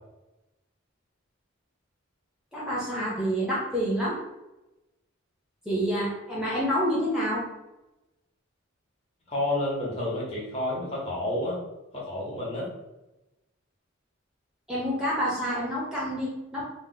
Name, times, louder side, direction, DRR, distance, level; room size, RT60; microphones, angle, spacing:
voice 1, 2.5-4.2 5.7-7.5 14.7-16.7, equal, 5° right, -7 dB, 0.5 m, -28 dB
voice 2, 9.3-11.6 11.9-12.7, left 1 dB, 30° left, -6 dB, 0.8 m, -30 dB
2.8 x 2.0 x 3.8 m, 1.0 s
head